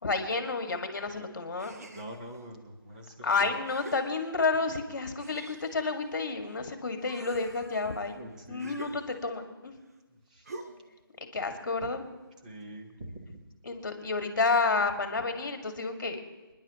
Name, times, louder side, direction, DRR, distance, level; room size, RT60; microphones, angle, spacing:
voice 1, 0.0-1.8 3.2-8.2 8.5-9.7 11.3-12.1 13.6-16.2, left 4 dB, 50° left, 5 dB, 2.0 m, -30 dB
sound 1, 1.6-2.4 3.1-3.2 3.7-4.7 5.2-6.6 6.9-9.5 10.5-11.0, right 2 dB, 40° right, 0.9 m, -47 dB
voice 2, 1.9-3.5 8.2-8.8 10.3-10.4 12.4-13.4, right 1 dB, 20° right, 1 dB, 1.2 m, -44 dB
29.5 x 10.5 x 3.0 m, 1.2 s
hypercardioid pair, 175°, 13 cm